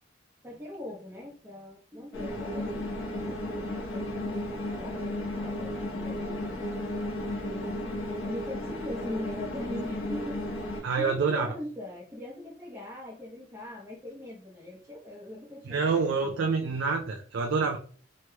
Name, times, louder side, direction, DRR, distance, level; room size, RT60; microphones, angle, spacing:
voice 1, 0.4-6.6 7.2-7.8 8.2-10.4 10.7-16.7, left 1 dB, 15° right, -6 dB, 0.6 m, -41 dB
sound 1, 2.1-10.8, left 1 dB, 80° left, 1.0 m, -34 dB
voice 2, 10.8-11.5 15.7-17.8, right 4 dB, 75° right, 3 dB, 0.4 m, -27 dB
3.1 x 2.9 x 2.2 m, 0.43 s
head